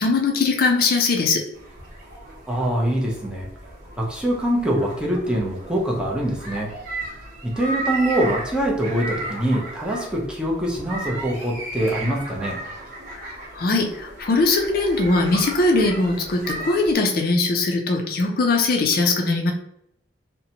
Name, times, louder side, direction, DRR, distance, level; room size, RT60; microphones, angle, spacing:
voice 1, 0.0-1.4 13.1-19.5, left 3 dB, 50° left, 2 dB, 0.4 m, -21 dB
sound 1, 1.5-16.9, right 1 dB, 50° right, 0.8 m, -35 dB
voice 2, 2.5-3.5 4.0-6.7 7.4-12.6, right 1 dB, 5° right, -3 dB, 0.5 m, -24 dB
2.6 x 2.1 x 2.8 m, 0.75 s
head